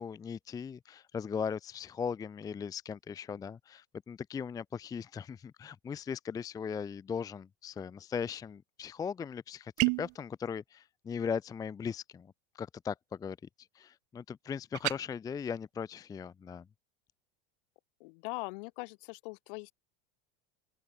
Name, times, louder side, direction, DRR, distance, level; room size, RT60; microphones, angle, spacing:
voice 1, 0.0-16.7, left 6 dB, 10° left, 0.5 m, -38 dB
sound 1, 9.8-10.2 14.7-15.0, right 40 dB or more, 50° right, 0.6 m, -29 dB
voice 2, 18.0-19.7, left 30 dB, 60° left, 5.3 m, -41 dB
open air
supercardioid pair, 160°, 29 cm